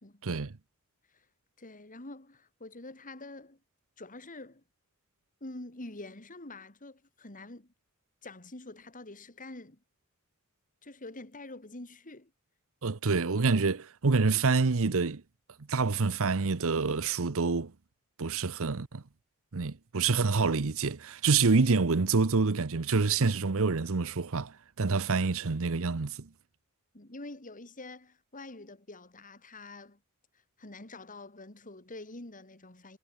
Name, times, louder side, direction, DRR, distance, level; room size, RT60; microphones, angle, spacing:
voice 1, 0.2-0.5 12.8-15.2 15.7-17.7 18.2-19.0 19.5-26.3, right 4 dB, 65° right, 0.9 m, -27 dB
voice 2, 1.6-3.6 4.0-4.6 5.4-7.7 8.2-9.8 10.8-12.3 26.9-30.0 30.6-33.0, left 2 dB, 40° left, 3.0 m, -46 dB
head